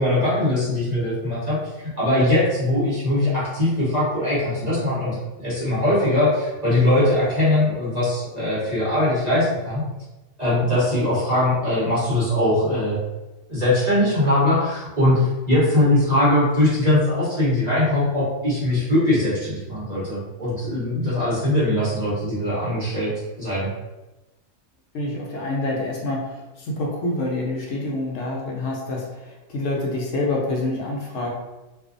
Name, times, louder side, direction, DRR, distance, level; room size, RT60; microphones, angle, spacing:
voice 1, 0.0-9.8 10.4-13.0 13.5-23.1 23.4-23.7, left 1 dB, 35° right, -8 dB, 0.8 m, -21 dB
voice 2, 24.9-31.3, left 2 dB, 75° left, -2 dB, 1.0 m, -27 dB
2.5 x 2.3 x 2.5 m, 1.1 s
omnidirectional pair, 1.3 m